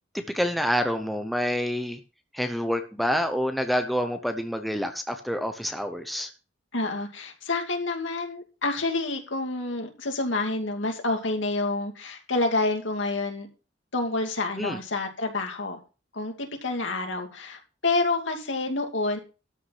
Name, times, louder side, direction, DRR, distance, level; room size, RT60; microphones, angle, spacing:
voice 1, 0.1-2.0 2.3-6.3 14.6-14.8, equal, ahead, 6 dB, 0.8 m, -27 dB
voice 2, 6.7-13.5 13.9-15.8 16.1-19.2, left 2 dB, 85° left, 4 dB, 2.5 m, -28 dB
13.0 x 6.0 x 5.8 m, 0.33 s
head